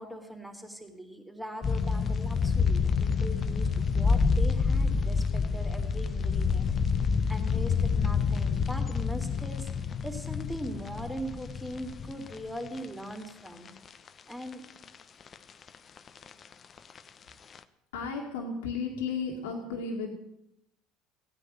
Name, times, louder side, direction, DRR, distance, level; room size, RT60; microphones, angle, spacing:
voice 1, 0.0-6.7 7.0-13.7 14.3-14.6, equal, 5° right, 3 dB, 3.4 m, -40 dB
sound 1, 1.6-13.1 13.5-13.6 14.1-14.9 15.2-15.4 15.7-17.0 17.3-17.6, left 5 dB, 40° left, 1.0 m, -28 dB
voice 2, 17.9-20.1, left 4 dB, 85° left, -1 dB, 2.2 m, -34 dB
15.5 x 9.8 x 7.9 m, 0.81 s
hypercardioid pair, 75°, 0 cm